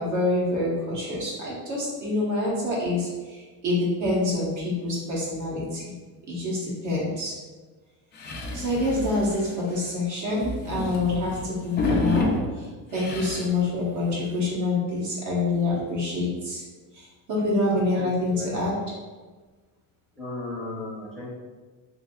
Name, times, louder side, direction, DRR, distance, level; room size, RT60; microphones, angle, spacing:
voice 1, 0.0-5.9 6.3-7.4 8.5-16.6 16.9-18.7, left 2 dB, 50° right, -6 dB, 1.0 m, -26 dB
sound 1, 8.1-9.9 10.3-12.5 12.9-13.6 14.0-14.1 14.3-14.4 15.7-15.8, left 2 dB, 30° left, 0.4 m, -29 dB
voice 2, 17.9-18.6 20.2-21.3, left 2 dB, ahead, -9 dB, 0.8 m, -35 dB
3.3 x 2.5 x 2.3 m, 1.3 s
cardioid pair, 145°, 38 cm